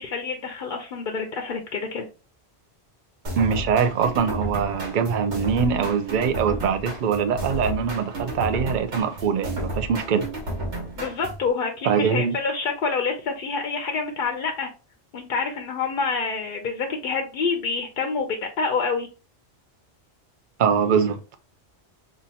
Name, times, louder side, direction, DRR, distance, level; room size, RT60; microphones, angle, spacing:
voice 1, 0.0-2.0 11.0-14.7 15.1-19.1, left 4 dB, 60° left, 0.7 m, -27 dB
sound 1, 3.2-11.5, right 1 dB, 80° right, 1.6 m, -32 dB
voice 2, 3.4-10.2 11.8-12.4 20.6-21.3, right 6 dB, 55° right, 0.6 m, -23 dB
5.5 x 2.5 x 2.7 m
omnidirectional pair, 1.2 m